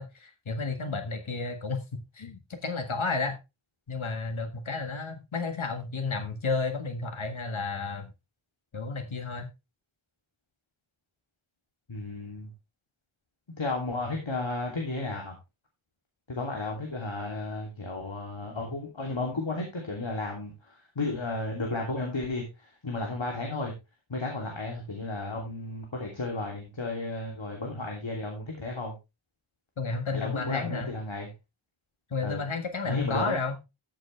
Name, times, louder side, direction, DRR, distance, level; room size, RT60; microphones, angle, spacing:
voice 1, 0.0-3.4 3.9-8.1 8.7-9.5 29.8-30.9 32.1-33.6, left 4 dB, 85° left, 6 dB, 1.8 m, -32 dB
voice 2, 11.9-12.5 13.6-15.4 16.3-23.7 24.1-28.9 30.1-31.3 32.2-32.4 32.8-33.4, left 2 dB, 70° left, 0 dB, 3.1 m, -33 dB
14.0 x 7.0 x 3.3 m, 0.25 s
wide cardioid pair, 60°, 47 cm